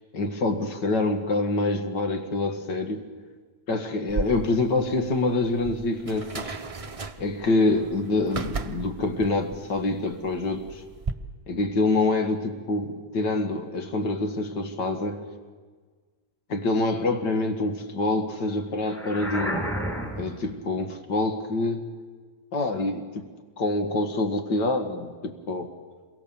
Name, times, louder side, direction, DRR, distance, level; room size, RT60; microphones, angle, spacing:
voice 1, 0.1-3.1 3.7-6.5 7.2-10.8 11.5-15.2 16.5-19.7 20.2-21.9 22.5-23.2 23.6-25.7, left 2 dB, 90° left, 5 dB, 2.5 m, -26 dB
sound 1, 4.1-11.1, right 4 dB, 25° right, 0.7 m, -36 dB
sound 2, 18.8-20.5, equal, ahead, 4.1 m, -31 dB
28.0 x 23.0 x 7.1 m, 1.5 s
omnidirectional pair, 1.8 m